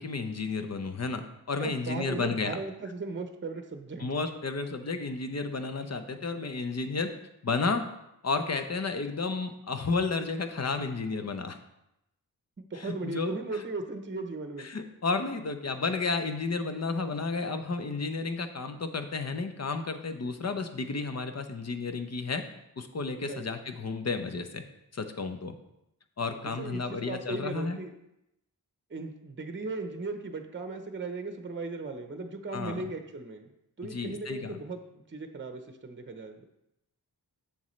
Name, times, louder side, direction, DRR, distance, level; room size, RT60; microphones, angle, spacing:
voice 1, 0.0-2.6 4.0-7.1 7.4-7.8 8.2-11.6 12.8-13.3 14.6-22.4 22.8-24.6 24.9-25.5 26.2-27.8 32.5-32.8 33.9-34.6, left 4 dB, 40° left, 7 dB, 0.8 m, -32 dB
voice 2, 1.6-4.1 12.7-14.7 23.2-23.5 26.4-27.9 28.9-33.5 33.8-36.4, right 3 dB, 30° right, 6 dB, 0.8 m, -37 dB
7.4 x 7.0 x 3.2 m, 0.85 s
cardioid pair, 65°, 38 cm